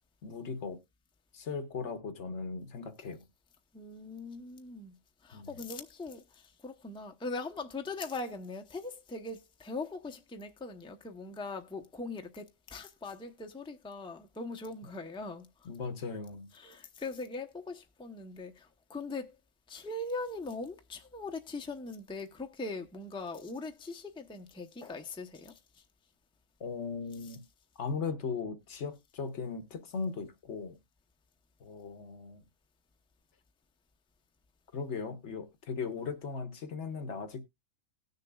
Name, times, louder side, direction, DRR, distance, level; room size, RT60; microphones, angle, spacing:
voice 1, 0.2-0.8 1.3-3.2 5.3-5.5 15.6-16.5 26.6-27.4 27.8-30.8 31.6-32.4 34.7-37.4, left 5 dB, 65° left, 1.2 m, -38 dB
voice 2, 3.7-5.0 5.2-15.7 16.5-19.4 19.7-25.8, left 3 dB, 5° left, 0.7 m, -41 dB
18.5 x 6.6 x 2.3 m
omnidirectional pair, 1.3 m